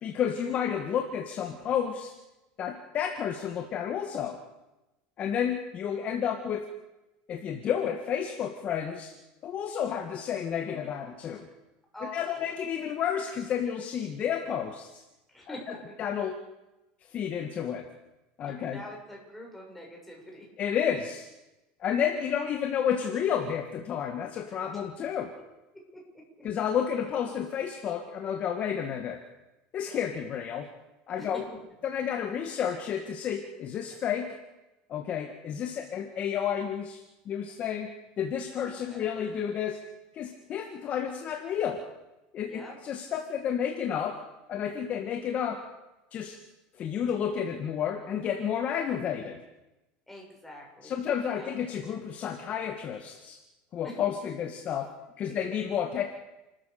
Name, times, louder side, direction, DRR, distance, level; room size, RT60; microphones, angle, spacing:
voice 1, 0.0-2.1 2.6-4.4 5.2-6.6 7.3-9.1 9.4-11.5 12.1-15.0 15.7-16.3 17.1-17.9 18.4-18.8 20.6-21.3 21.8-25.3 26.4-29.2 29.7-30.7 31.1-31.5 31.8-34.4 34.9-39.8 40.1-41.8 42.3-44.2 44.5-45.6 46.1-46.4 46.8-49.4 50.8-53.4 53.7-54.9 55.2-56.0, left 8 dB, 35° left, 4 dB, 2.0 m, -31 dB
voice 2, 11.9-12.5 15.3-15.9 18.5-20.5 25.9-26.0 31.2-31.4 38.6-39.4 42.4-42.8 50.1-51.6 53.8-54.0, left 1 dB, 5° left, -2 dB, 7.1 m, -45 dB
29.5 x 13.5 x 6.8 m, 0.99 s
supercardioid pair, 140°, 4 cm